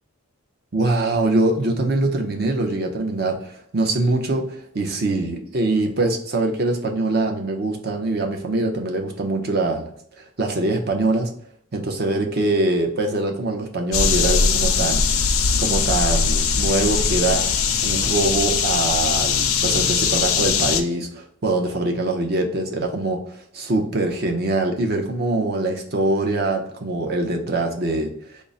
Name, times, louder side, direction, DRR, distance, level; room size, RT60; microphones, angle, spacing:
voice 1, 0.7-9.9 10.2-11.3 11.7-15.0 15.6-17.4 17.8-23.2 23.5-28.1, right 2 dB, 50° right, 2 dB, 0.6 m, -23 dB
sound 1, 13.9-20.8, left 6 dB, 85° left, 0.4 m, -20 dB
3.7 x 2.0 x 3.8 m, 0.68 s
head